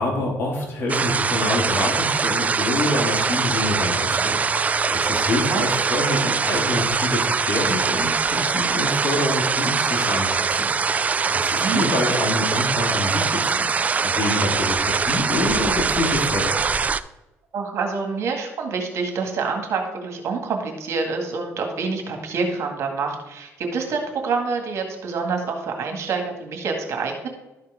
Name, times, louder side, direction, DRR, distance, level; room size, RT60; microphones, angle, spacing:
voice 1, 0.0-13.7 14.0-16.5, left 2 dB, 45° left, -2 dB, 2.8 m, -26 dB
sound 1, 0.9-17.0, right 5 dB, 30° right, 0.4 m, -22 dB
voice 2, 11.3-11.8 17.5-27.3, right 4 dB, 65° right, 3 dB, 2.0 m, -27 dB
12.5 x 4.4 x 5.0 m, 0.99 s
cardioid pair, 105°, 5 cm